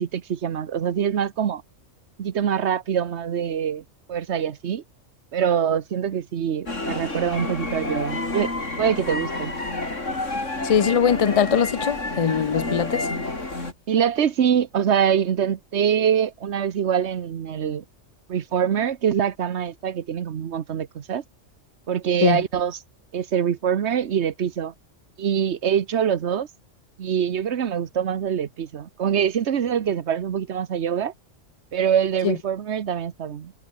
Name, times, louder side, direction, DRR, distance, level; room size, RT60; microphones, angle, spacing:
voice 1, 0.0-1.6 2.2-4.8 5.3-8.5 8.8-9.5 13.9-17.8 18.3-21.2 21.9-22.8 23.1-24.7 25.2-26.5 27.0-31.1 31.7-33.5, right 8 dB, 60° right, 1.2 m, -24 dB
sound 1, 6.7-13.7, left 2 dB, 70° left, 5.0 m, -29 dB
voice 2, 10.6-13.1 22.2-22.4 32.2-32.3, left 7 dB, 45° left, 0.4 m, -21 dB
omnidirectional pair, 1.3 m